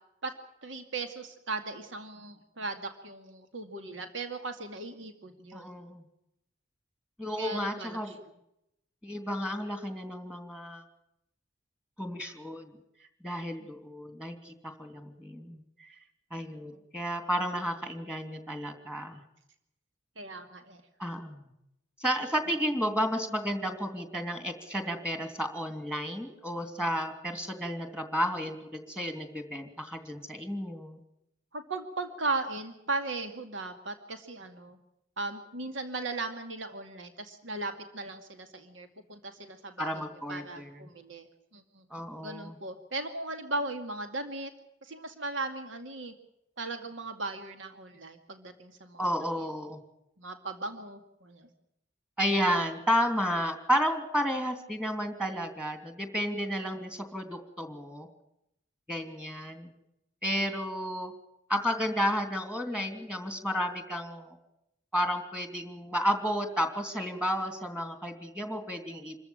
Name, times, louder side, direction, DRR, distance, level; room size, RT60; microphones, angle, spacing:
voice 1, 0.6-5.7 7.4-8.2 13.6-13.7 16.7-16.8 20.2-20.8 31.5-34.8 35.2-40.0 40.3-41.8 42.2-44.5 44.8-46.1 46.6-49.1 50.2-51.5, right 3 dB, 75° right, 7 dB, 2.4 m, -37 dB
voice 2, 5.5-6.0 7.2-8.1 9.0-10.8 12.0-12.7 13.2-15.9 16.3-19.2 21.0-21.5 22.0-31.0 39.8-40.8 41.9-42.6 49.0-49.8 52.2-58.1 58.9-59.7 60.2-61.1 61.5-64.4 64.9-69.1, equal, 5° right, 6 dB, 3.0 m, -32 dB
27.0 x 14.0 x 8.8 m, 0.82 s
head